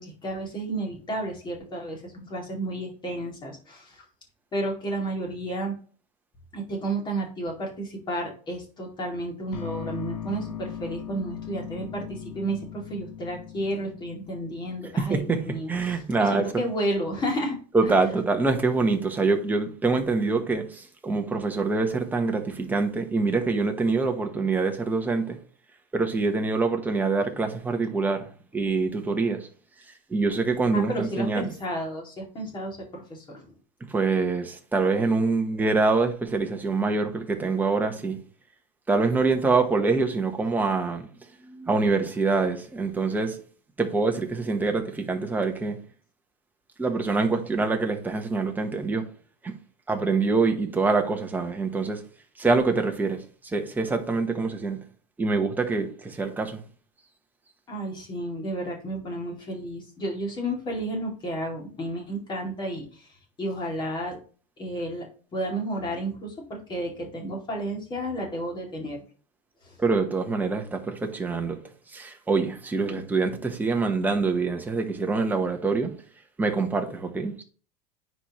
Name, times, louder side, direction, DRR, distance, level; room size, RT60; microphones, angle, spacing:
voice 1, 0.0-4.0 4.5-5.7 6.5-17.6 17.8-17.9 30.7-33.5 57.7-63.1 63.4-64.2 64.6-65.1 65.3-69.0 69.6-69.8 72.9-73.0, right 1 dB, 20° left, 2.5 m, -32 dB
sound 1, 9.5-15.5, left 9 dB, 85° left, 1.3 m, -39 dB
voice 2, 15.0-15.4 15.7-16.4 17.7-25.4 25.9-28.3 28.5-29.5 30.1-31.5 33.9-38.2 38.9-41.1 41.4-43.4 43.8-45.8 46.8-49.0 49.4-49.5 49.9-52.0 52.4-53.2 53.5-54.8 55.2-56.6 69.8-71.6 71.9-75.9 76.4-77.4, right 3 dB, 10° right, 1.0 m, -25 dB
9.8 x 4.3 x 3.1 m
supercardioid pair, 150°, 21 cm